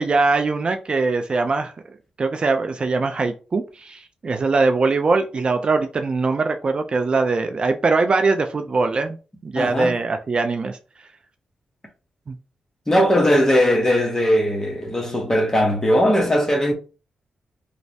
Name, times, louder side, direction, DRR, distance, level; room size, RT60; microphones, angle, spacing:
voice 1, 0.0-1.7 2.2-9.2 9.4-10.8 12.3-12.4, right 3 dB, 40° right, 0.3 m, -21 dB
voice 2, 9.5-10.0 12.9-16.7, equal, 20° left, 0.9 m, -19 dB
3.1 x 2.0 x 2.7 m
cardioid pair, 80°, 3 cm